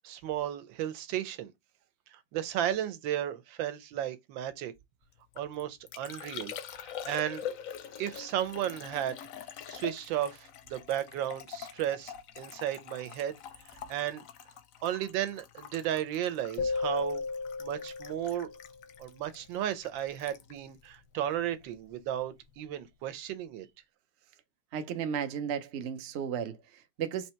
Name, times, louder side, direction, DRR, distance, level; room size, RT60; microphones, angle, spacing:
voice 1, 0.0-1.5 2.1-4.7 5.4-6.5 6.8-7.4 8.0-9.2 9.7-13.4 13.9-14.2 14.8-17.2 17.6-18.5 19.0-23.7, right 11 dB, 85° right, 1.4 m, -34 dB
Liquid, 5.1-21.8 22.0-22.5, left 9 dB, 65° left, 0.8 m, -45 dB
sound 1, 16.6-18.8, left 4 dB, 85° left, 1.6 m, -34 dB
voice 2, 24.7-27.3, right 8 dB, 65° right, 0.6 m, -34 dB
3.9 x 2.8 x 4.3 m
omnidirectional pair, 2.0 m